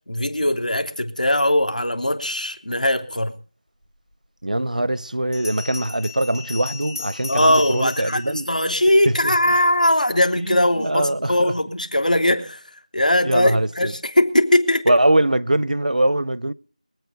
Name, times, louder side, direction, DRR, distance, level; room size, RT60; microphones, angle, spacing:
voice 1, 0.1-3.3 7.3-12.6 12.9-15.0, left 1 dB, 80° left, 3.1 m, -20 dB
Bell, 4.1-4.2 5.3-9.2, left 5 dB, 20° left, 2.2 m, -36 dB
voice 2, 4.4-8.5 9.0-9.3 10.4-11.5 13.2-13.9 14.9-16.5, right 1 dB, 80° right, 0.7 m, -22 dB
23.5 x 8.3 x 5.3 m
figure-of-eight pair, 175°, 4 cm